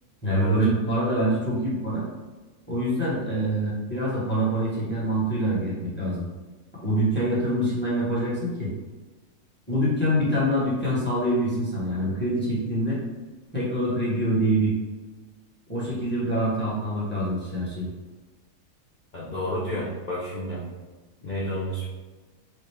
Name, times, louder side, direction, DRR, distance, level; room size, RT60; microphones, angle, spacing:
voice 1, 0.2-2.0 2.7-6.2 6.8-8.7 9.7-13.0 13.5-14.7 15.7-17.9, right 1 dB, 10° left, -7 dB, 0.7 m, -25 dB
voice 2, 19.1-20.6 21.2-21.9, equal, 85° left, -8 dB, 0.4 m, -30 dB
4.3 x 2.0 x 3.3 m, 1.3 s
omnidirectional pair, 1.7 m